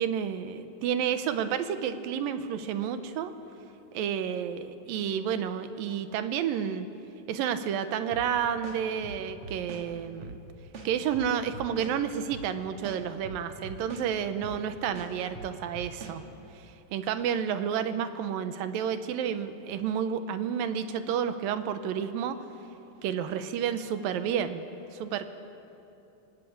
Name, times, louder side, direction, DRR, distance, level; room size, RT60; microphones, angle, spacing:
voice 1, 0.0-3.3 3.9-6.9 7.3-10.4 10.8-16.2 16.9-22.4 23.0-24.6 24.9-25.3, right 8 dB, 70° right, 10 dB, 2.4 m, -30 dB
sound 1, 8.1-8.3 8.6-9.8 10.2-10.4 10.7-11.9 12.3-12.5 12.8-14.1 14.4-14.6 14.9-16.2, right 2 dB, 40° right, 2.5 m, -42 dB
28.0 x 18.5 x 8.6 m, 3.0 s
omnidirectional pair, 4.6 m